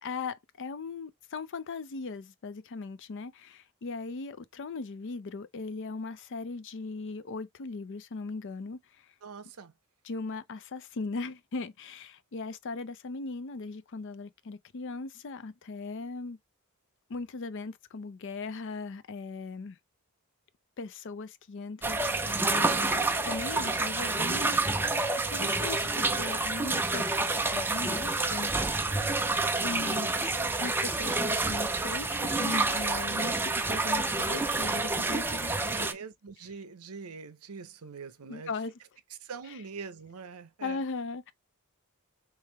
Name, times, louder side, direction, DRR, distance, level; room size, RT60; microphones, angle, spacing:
voice 1, 0.0-9.1 10.0-16.4 17.1-19.8 20.8-24.6 25.3-28.9 29.6-35.9 38.2-38.7 39.5-39.6 40.6-41.3, left 3 dB, 55° left, 0.5 m, -38 dB
voice 2, 9.2-9.7 22.2-22.7 28.9-29.1 35.1-35.3 35.7-38.5 39.2-40.8, right 5 dB, 80° right, 0.7 m, -44 dB
sound 1, 21.8-35.9, right 3 dB, 10° right, 0.4 m, -28 dB
3.4 x 3.4 x 3.3 m
head